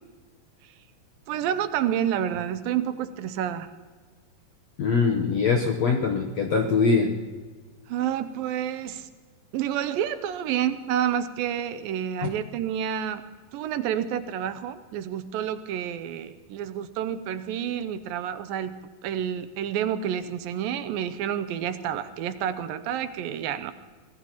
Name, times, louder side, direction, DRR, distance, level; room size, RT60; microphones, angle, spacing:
voice 1, 1.3-3.7 7.9-9.1 9.5-13.2 13.5-23.7, right 10 dB, 80° right, 11 dB, 2.4 m, -29 dB
voice 2, 4.8-7.1 12.2-12.3, left 4 dB, 70° left, 2 dB, 1.7 m, -22 dB
25.0 x 18.5 x 3.0 m, 1.4 s
omnidirectional pair, 4.2 m